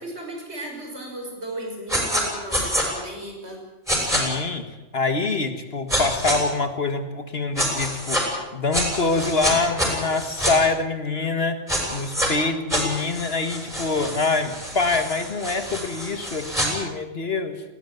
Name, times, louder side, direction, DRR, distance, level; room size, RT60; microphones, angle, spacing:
voice 1, 0.0-3.6, right 1 dB, 60° right, 2 dB, 6.4 m, -35 dB
sound 1, 1.9-2.2 2.5-2.8 3.9-4.2 5.9-6.4 7.6-8.2 8.7-10.5 11.7-12.3 12.7-16.7, equal, ahead, 7.0 m, -26 dB
voice 2, 4.0-4.7 4.9-11.6 11.9-17.6, left 3 dB, 55° left, 8 dB, 1.9 m, -25 dB
20.5 x 18.0 x 9.4 m, 1.1 s
omnidirectional pair, 1.3 m